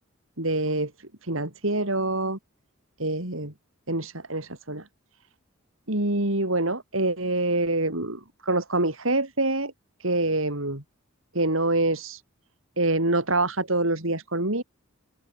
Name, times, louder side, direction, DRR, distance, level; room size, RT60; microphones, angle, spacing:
voice 1, 0.4-2.4 3.0-3.5 3.9-4.8 5.9-9.7 10.0-10.8 11.3-12.2 12.8-14.6, right 2 dB, 70° right, 5.4 m, -26 dB
open air
head